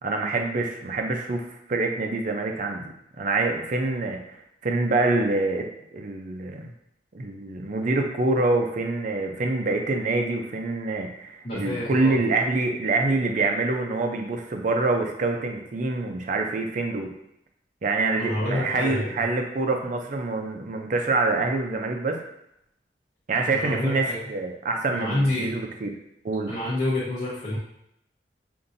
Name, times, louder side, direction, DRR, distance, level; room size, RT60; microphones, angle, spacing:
voice 1, 0.0-4.2 4.6-5.7 5.9-6.7 7.1-17.1 17.8-22.2 23.3-25.9 26.2-26.6, right 3 dB, 45° right, 3 dB, 0.5 m, -26 dB
voice 2, 11.4-12.2 18.2-19.2 23.5-24.3 24.9-25.5 26.5-27.6, left 1 dB, 40° left, -9 dB, 0.9 m, -28 dB
5.3 x 2.6 x 2.6 m, 0.77 s
head